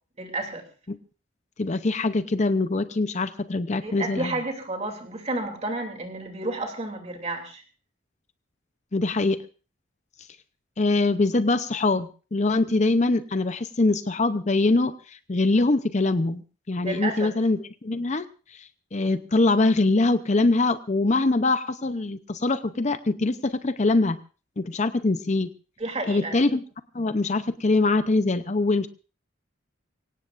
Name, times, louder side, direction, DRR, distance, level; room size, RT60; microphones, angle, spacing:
voice 1, 0.2-0.7 3.8-7.6 16.8-17.4 25.8-26.4, right 2 dB, 35° right, 3 dB, 3.0 m, -31 dB
voice 2, 1.6-4.4 8.9-9.4 10.8-16.4 16.7-18.2 18.9-24.2 24.6-25.5 26.1-26.6 26.9-28.9, left 2 dB, 35° left, 11 dB, 0.7 m, -23 dB
24.5 x 17.0 x 2.5 m, 0.35 s
head